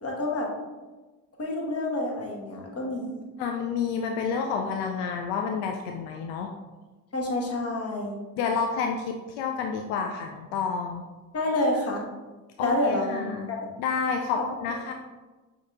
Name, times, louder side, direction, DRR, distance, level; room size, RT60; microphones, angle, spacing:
voice 1, 0.0-0.5 1.4-3.2 7.1-8.2 11.3-12.0 12.6-13.6, left 1 dB, 40° left, -1 dB, 1.3 m, -28 dB
voice 2, 3.4-6.5 8.4-11.0 12.6-13.5 13.8-14.9, left 5 dB, 85° left, 3 dB, 0.5 m, -29 dB
6.3 x 3.0 x 2.4 m, 1.2 s
hypercardioid pair, 60°, 37 cm